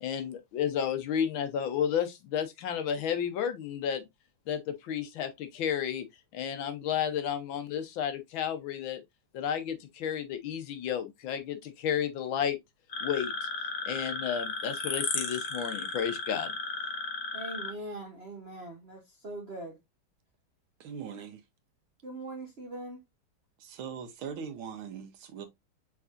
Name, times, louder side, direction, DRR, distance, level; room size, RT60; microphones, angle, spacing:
voice 1, 0.0-4.1 4.5-6.0 6.3-9.0 9.3-12.6 13.0-13.3 13.9-16.5, left 8 dB, 75° left, 1.5 m, -32 dB
sound 1, 12.9-17.7, left 3 dB, 35° left, 0.8 m, -34 dB
voice 2, 17.3-19.8 22.0-23.0, right 2 dB, 50° right, 0.7 m, -41 dB
voice 3, 20.8-21.4 23.6-25.5, right 7 dB, 80° right, 1.8 m, -40 dB
5.9 x 3.6 x 2.4 m
omnidirectional pair, 2.3 m